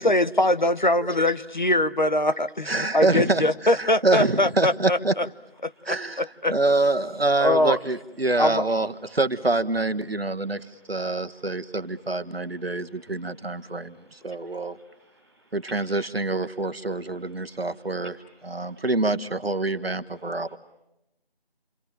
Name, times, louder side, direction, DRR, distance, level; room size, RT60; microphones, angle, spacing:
voice 1, 0.0-5.3 5.6-6.5 7.4-7.8 8.4-8.6, left 1 dB, 50° left, 13 dB, 1.0 m, -23 dB
voice 2, 2.7-5.1 5.8-6.2 6.5-14.8 15.5-18.2 18.4-20.6, right 2 dB, 70° right, 9 dB, 1.5 m, -26 dB
voice 3, 13.4-13.9 14.3-15.5 17.4-17.6 18.6-18.8, equal, 15° right, 1 dB, 4.5 m, -61 dB
28.5 x 23.5 x 9.0 m, 0.89 s
figure-of-eight pair, 180°, 31 cm